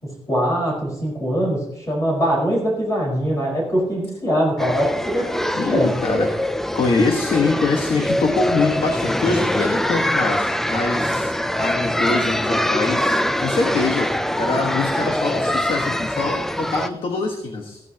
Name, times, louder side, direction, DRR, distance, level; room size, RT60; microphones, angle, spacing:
voice 1, 0.3-5.9, equal, 30° left, -3 dB, 4.7 m, -22 dB
sound 1, 4.6-16.9, left 1 dB, 5° left, 0.4 m, -23 dB
voice 2, 5.5-6.3 6.7-17.8, left 3 dB, 55° left, 3 dB, 1.4 m, -24 dB
15.0 x 14.0 x 2.9 m, 0.88 s
wide cardioid pair, 165°, 10 cm